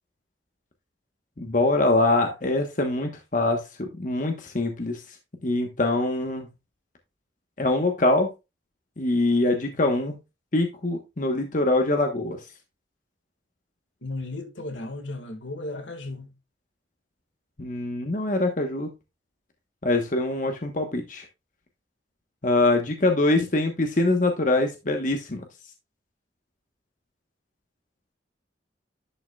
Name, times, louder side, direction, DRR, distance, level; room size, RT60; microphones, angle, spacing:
voice 1, 1.4-5.0 5.4-6.5 7.6-8.3 9.0-10.1 10.5-12.4 17.6-18.9 19.8-21.3 22.4-25.4, left 2 dB, 45° left, 1.1 m, -24 dB
voice 2, 14.0-16.3, left 2 dB, 90° left, 1.8 m, -35 dB
11.0 x 5.7 x 2.3 m
head